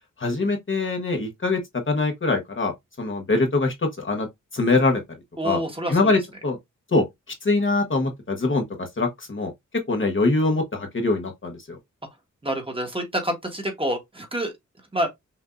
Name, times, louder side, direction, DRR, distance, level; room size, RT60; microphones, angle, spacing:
voice 1, 0.2-1.6 1.9-2.7 3.0-4.3 4.5-5.0 5.4-5.6 5.9-6.6 6.9-7.0 7.4-8.6 9.0-9.5 9.9-11.8, left 3 dB, 40° left, 1.1 m, -23 dB
voice 2, 5.4-6.1 12.4-14.5 14.9-15.1, equal, 15° right, 1.3 m, -27 dB
5.8 x 2.6 x 2.4 m
wide cardioid pair, 110°, 30 cm